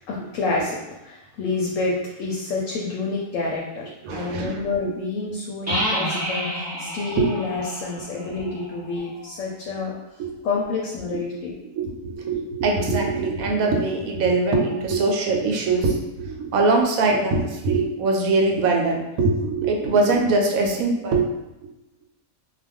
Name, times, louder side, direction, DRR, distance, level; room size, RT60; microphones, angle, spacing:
voice 1, 0.1-0.8 1.0-9.9 10.4-11.5, left 3 dB, 75° left, -2 dB, 0.9 m, -28 dB
voice 2, 4.0-4.9 5.7-5.8 7.2-7.3 8.4-8.5 10.2-10.3 11.1-11.2 11.8-21.3, right 3 dB, 80° right, 1 dB, 1.0 m, -22 dB
sound 1, 5.7-9.3, equal, 20° right, 0.5 m, -29 dB
2.4 x 2.3 x 3.5 m, 0.95 s
omnidirectional pair, 1.4 m